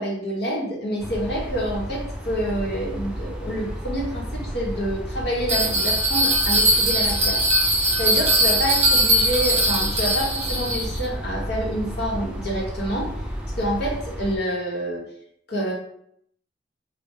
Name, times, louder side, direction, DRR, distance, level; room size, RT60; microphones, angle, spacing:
voice 1, 0.0-7.7 8.0-13.1 13.6-15.1 15.5-15.7, equal, 65° left, -3 dB, 1.1 m, -27 dB
sound 1, 1.0-14.4, equal, 5° right, 0.4 m, -32 dB
Bell, 5.5-11.0, right 1 dB, 35° right, 0.9 m, -20 dB
3.1 x 2.3 x 3.5 m, 0.70 s
head